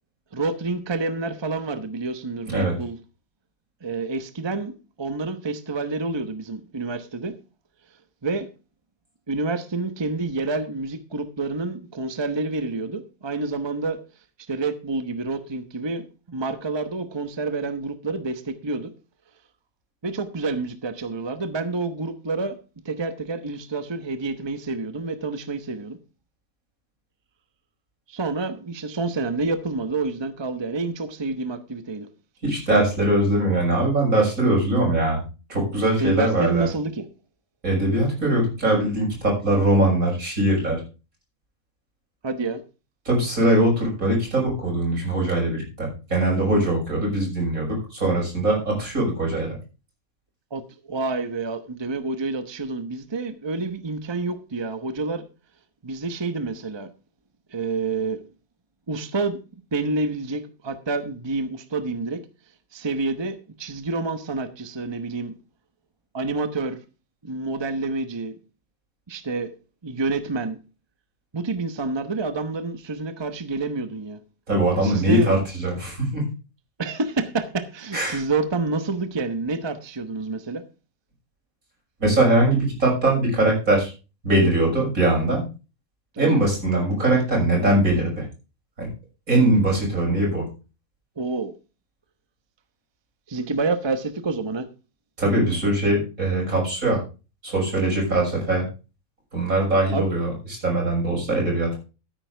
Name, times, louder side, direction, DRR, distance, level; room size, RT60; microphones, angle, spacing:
voice 1, 0.3-3.0 3.8-4.7 5.0-7.3 8.2-8.5 9.3-14.0 14.5-18.9 20.0-22.6 22.8-26.0 28.1-32.1 36.0-37.1 42.2-42.6 50.5-55.3 55.8-56.9 57.5-58.2 58.9-59.4 59.7-62.2 62.7-65.4 66.1-66.8 67.2-68.4 69.1-69.6 69.8-70.6 71.3-74.2 74.8-75.4 76.8-80.6 86.1-86.4 91.2-91.5 93.3-94.7 99.9-100.1, right 3 dB, 20° right, 0.9 m, -28 dB
voice 2, 32.4-35.2 35.5-36.7 37.6-40.8 43.0-49.5 74.5-76.2 77.9-78.2 82.0-83.9 84.2-85.4 86.2-88.2 88.8-88.9 89.3-90.4 95.2-97.0 97.4-98.7 99.3-100.3 100.6-101.8, right 1 dB, 80° right, 6.7 m, -21 dB
13.0 x 9.8 x 3.4 m
omnidirectional pair, 1.4 m